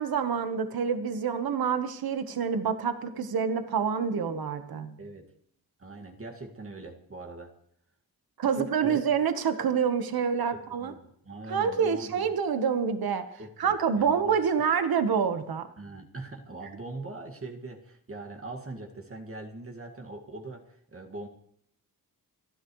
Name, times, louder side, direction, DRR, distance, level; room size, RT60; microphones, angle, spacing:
voice 1, 0.0-4.9 8.4-10.9 11.5-13.2 13.6-15.7, right 6 dB, 75° right, 9 dB, 1.3 m, -27 dB
voice 2, 5.8-7.5 8.5-9.0 10.5-12.3 13.4-14.3 15.8-21.3, right 2 dB, 35° right, 2 dB, 2.0 m, -41 dB
27.5 x 11.5 x 3.2 m, 0.69 s
wide cardioid pair, 105°, 36 cm